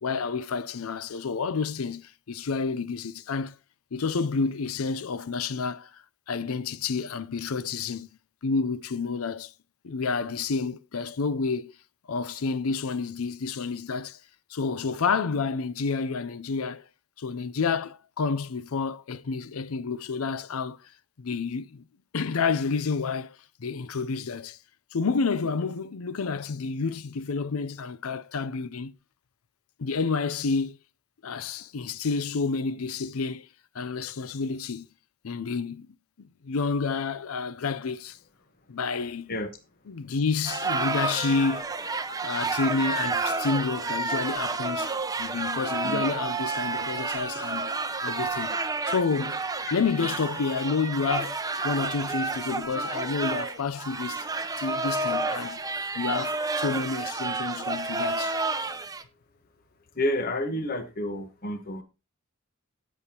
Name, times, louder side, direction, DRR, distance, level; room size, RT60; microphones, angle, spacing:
voice 1, 0.0-3.5 3.9-8.1 8.4-9.5 9.8-11.7 12.1-14.2 14.5-16.8 17.2-20.9 21.2-21.8 22.1-24.6 24.9-28.9 29.8-30.8 31.2-33.5 33.7-34.9 35.2-35.9 36.2-38.2 38.7-39.3 39.9-41.7 42.2-47.7 48.0-48.6 48.9-49.4 49.7-54.3 54.6-55.6 55.9-58.4, left 4 dB, 75° left, 0.5 m, -29 dB
sound 1, 40.4-59.0, right 3 dB, 15° right, 0.7 m, -30 dB
voice 2, 60.0-61.8, left 1 dB, 45° left, 1.2 m, -30 dB
18.0 x 7.0 x 2.9 m
head